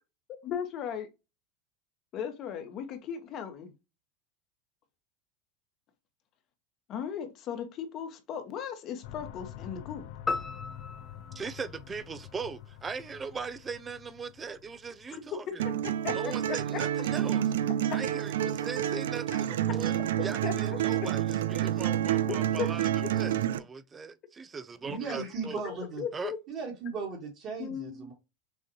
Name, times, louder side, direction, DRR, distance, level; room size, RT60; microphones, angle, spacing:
voice 1, 0.4-1.1 2.1-3.7 6.9-10.1 15.1-15.5 16.0-16.6 19.3-19.4 20.4-20.5 22.6-22.7 25.6-26.4 27.6-27.9, left 8 dB, 45° left, 1.2 m, -36 dB
sound 1, 9.0-15.3, left 11 dB, 65° left, 0.5 m, -47 dB
sound 2, 10.3-12.7, left 3 dB, 15° left, 0.7 m, -37 dB
voice 2, 11.3-15.7 16.1-17.5 17.8-25.6 26.1-26.3, right 5 dB, 20° right, 0.5 m, -39 dB
sound 3, 15.6-23.6, right 11 dB, 85° right, 0.3 m, -29 dB
voice 3, 24.8-26.0 26.5-28.1, right 4 dB, 45° right, 1.9 m, -37 dB
6.3 x 2.5 x 3.1 m
supercardioid pair, 115°, 0 cm